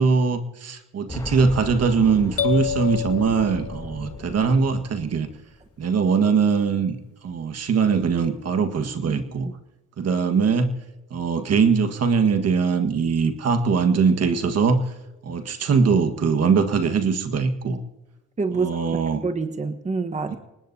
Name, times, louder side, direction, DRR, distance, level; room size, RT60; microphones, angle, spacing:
voice 1, 0.0-5.3 5.8-7.0 7.2-9.5 10.0-10.7 11.1-14.8 15.2-17.8 18.5-19.2 20.3-20.4, right 5 dB, 55° right, 7 dB, 1.7 m, -21 dB
Boom, 1.1-5.8 6.1-6.2 7.3-7.4, left 2 dB, 10° left, 2.9 m, -37 dB
sound 1, 2.4-4.3, left 9 dB, 50° left, 2.4 m, -28 dB
voice 2, 18.4-18.8 19.2-20.3, right 4 dB, 25° right, 6 dB, 1.3 m, -26 dB
25.0 x 19.5 x 2.8 m, 1.0 s
cardioid pair, 90°, 30 cm